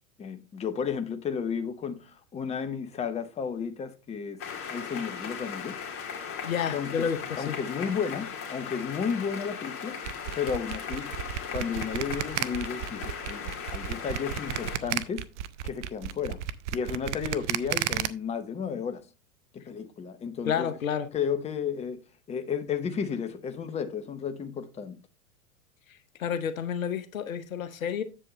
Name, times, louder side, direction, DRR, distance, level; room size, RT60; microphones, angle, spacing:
voice 1, 0.2-5.8 6.7-7.0 7.4-10.0 10.3-11.2 11.5-15.3 15.6-16.4 16.7-19.0 19.5-20.7 21.1-22.0 22.3-25.0, left 6 dB, 15° left, 0.8 m, -33 dB
sound 1, 4.4-14.8, left 6 dB, 30° left, 2.0 m, -38 dB
voice 2, 6.4-7.5 20.5-21.1 26.2-28.0, left 7 dB, 70° left, 1.0 m, -30 dB
sound 2, 10.0-18.1, right 12 dB, 55° right, 0.7 m, -32 dB
7.9 x 7.7 x 3.1 m
figure-of-eight pair, 85°, 42 cm